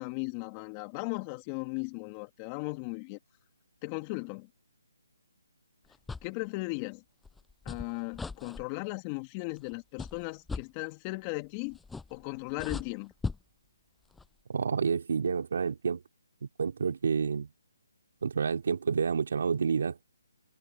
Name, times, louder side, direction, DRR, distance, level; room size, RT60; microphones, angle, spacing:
voice 1, 0.0-3.2 3.8-4.5 6.2-7.0 7.6-11.8 12.1-13.1, left 27 dB, 20° left, 2.5 m, -37 dB
sound 1, 5.9-6.3 7.2-8.6 9.6-9.7 10.0-10.6 11.7-12.2 12.5-13.4 14.1-14.3, left 4 dB, 5° left, 7.4 m, -38 dB
voice 2, 14.5-16.0 16.6-17.5 18.2-20.0, right 6 dB, 60° right, 4.0 m, -29 dB
hypercardioid pair, 155°, 0 cm